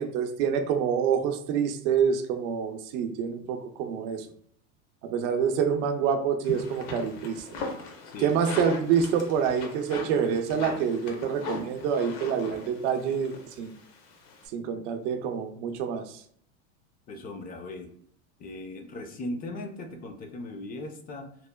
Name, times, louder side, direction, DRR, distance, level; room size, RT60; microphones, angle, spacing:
voice 1, 0.0-4.3 5.0-7.4 8.2-13.7 14.5-16.2, right 7 dB, 70° right, 6 dB, 0.5 m, -27 dB
sound 1, 6.4-14.5, left 3 dB, 75° left, 0.8 m, -39 dB
voice 2, 17.1-17.9 18.4-21.3, left 1 dB, 25° left, 5 dB, 0.4 m, -38 dB
2.9 x 2.1 x 2.2 m, 0.65 s
supercardioid pair, 110°, 37 cm